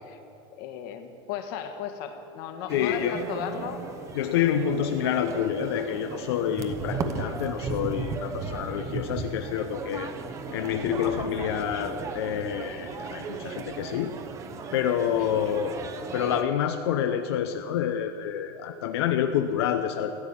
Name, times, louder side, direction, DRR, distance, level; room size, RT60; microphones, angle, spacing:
voice 1, 0.6-3.8 15.2-15.3, left 9 dB, 60° left, 7 dB, 1.4 m, -36 dB
voice 2, 2.7-3.3 4.1-10.1 10.5-14.1 14.7-15.8 16.1-20.1, left 9 dB, 90° left, 6 dB, 0.7 m, -28 dB
sound 1, 2.7-16.4, right 4 dB, 25° right, 0.8 m, -36 dB
14.5 x 9.3 x 8.5 m, 2.8 s
supercardioid pair, 165°, 13 cm